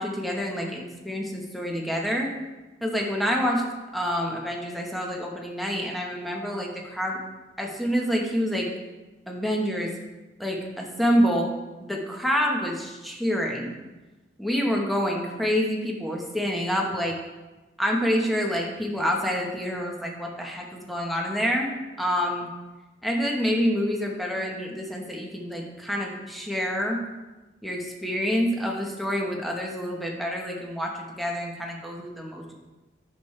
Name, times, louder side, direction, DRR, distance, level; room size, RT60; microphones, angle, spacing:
voice 1, 0.0-2.3 2.8-3.6 3.9-7.2 7.6-8.7 9.3-9.9 10.4-11.5 11.8-13.7 14.4-17.1 17.8-21.7 22.0-22.5 23.0-27.0 27.6-30.9 31.2-32.5, equal, ahead, -1 dB, 1.0 m, -27 dB
9.2 x 6.4 x 3.2 m, 1.1 s
head